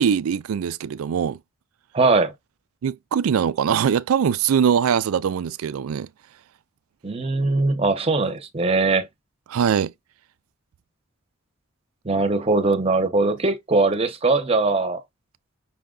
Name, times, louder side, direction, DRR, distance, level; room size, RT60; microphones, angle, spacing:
voice 1, 0.0-1.4 2.8-6.1 9.5-9.9, right 7 dB, 90° right, 0.4 m, -22 dB
voice 2, 1.9-2.3 7.0-9.1 12.0-15.0, right 3 dB, 30° right, 0.7 m, -21 dB
5.6 x 2.2 x 3.8 m
head